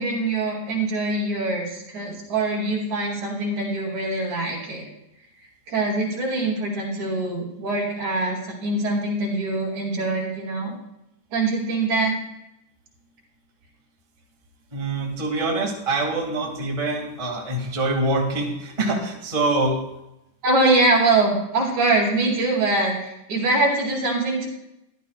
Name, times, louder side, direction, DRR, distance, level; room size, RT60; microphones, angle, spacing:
voice 1, 0.0-4.9 5.7-10.7 11.3-12.2 20.4-24.5, right 2 dB, 65° right, -3 dB, 3.6 m, -23 dB
voice 2, 14.7-19.8, right 2 dB, 15° right, -2 dB, 1.4 m, -25 dB
14.0 x 11.5 x 2.4 m, 0.88 s
omnidirectional pair, 3.6 m